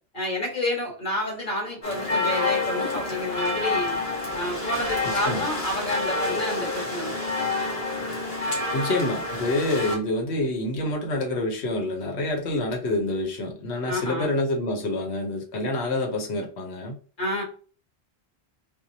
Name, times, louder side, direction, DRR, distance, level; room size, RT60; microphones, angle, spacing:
voice 1, 0.1-4.0 4.3-7.2 13.9-14.3 17.2-17.4, left 1 dB, 50° left, 1.8 m, -29 dB
sound 1, 1.8-10.0, left 2 dB, 35° left, 1.4 m, -28 dB
voice 2, 5.1-5.4 8.7-17.0, left 2 dB, 85° left, 1.1 m, -27 dB
4.5 x 2.1 x 2.7 m
omnidirectional pair, 1.1 m